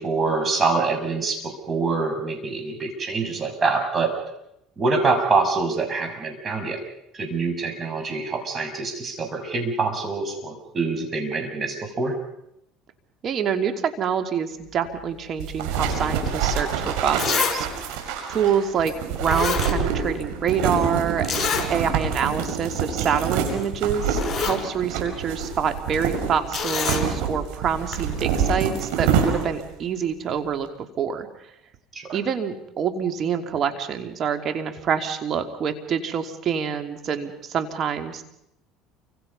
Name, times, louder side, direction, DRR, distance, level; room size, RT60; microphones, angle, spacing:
voice 1, 0.0-4.1 4.8-6.8 7.1-12.1 31.9-32.2, right 4 dB, 30° right, 3 dB, 6.6 m, -25 dB
voice 2, 13.2-17.8 18.3-30.7 31.0-31.3 32.1-38.2, right 7 dB, 45° right, 7 dB, 3.0 m, -26 dB
sound 1, 15.4-29.7, right 6 dB, 80° right, 5.8 m, -27 dB
Zipper (clothing), 16.6-16.7 17.2-17.6 17.9-18.0 18.9-19.0 19.2-20.2 20.5-20.6 21.2-21.7 22.1-22.2 22.6-22.8 23.6-23.7 24.0-24.6 26.5-27.1 27.9-28.0, left 5 dB, 25° left, 5.9 m, -26 dB
29.0 x 25.5 x 5.6 m, 0.81 s
supercardioid pair, 95°, 0 cm